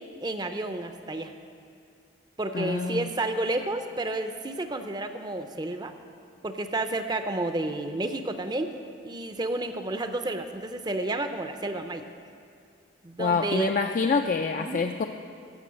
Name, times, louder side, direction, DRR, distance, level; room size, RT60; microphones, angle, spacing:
voice 1, 0.2-1.3 2.4-5.9 6.4-8.8 9.0-12.0 13.0-13.7 14.6-14.8, right 2 dB, 20° right, 8 dB, 0.5 m, -31 dB
voice 2, 2.5-3.1 13.2-15.1, left 4 dB, 40° left, 5 dB, 0.3 m, -26 dB
15.5 x 5.8 x 7.5 m, 2.4 s
head